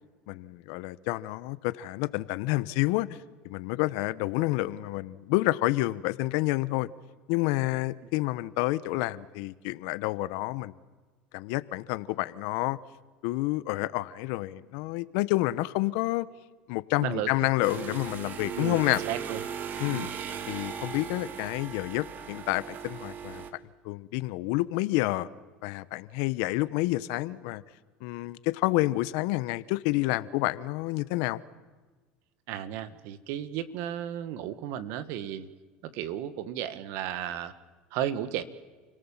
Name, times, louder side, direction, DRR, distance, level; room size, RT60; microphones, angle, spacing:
voice 1, 0.3-3.1 3.4-6.9 7.3-10.7 11.3-12.8 13.2-16.3 16.7-19.0 19.8-20.1 20.5-23.4 23.8-25.3 25.6-27.6 28.0-31.4, left 19 dB, 75° left, 17 dB, 0.9 m, -29 dB
voice 2, 17.0-17.5 18.6-18.8 19.1-19.4 19.9-20.1 32.5-35.5 35.8-37.5 37.9-38.4, right 11 dB, 70° right, 13 dB, 1.7 m, -34 dB
sound 1, 17.6-23.5, right 7 dB, 45° right, 2.1 m, -37 dB
29.5 x 18.0 x 7.4 m, 1.4 s
supercardioid pair, 100°, 4 cm